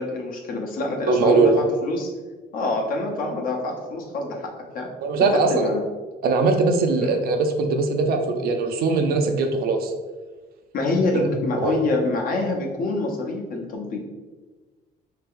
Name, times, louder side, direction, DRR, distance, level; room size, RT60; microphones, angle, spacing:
voice 1, 0.0-2.1 2.5-4.9 5.3-5.8 10.7-14.1, left 2 dB, 55° left, 1 dB, 0.8 m, -26 dB
voice 2, 1.0-1.7 5.0-5.7 6.2-9.9 11.1-11.3 11.6-11.8, right 3 dB, 65° right, 5 dB, 0.5 m, -21 dB
3.4 x 2.8 x 3.6 m, 1.3 s
cardioid pair, 110°, 17 cm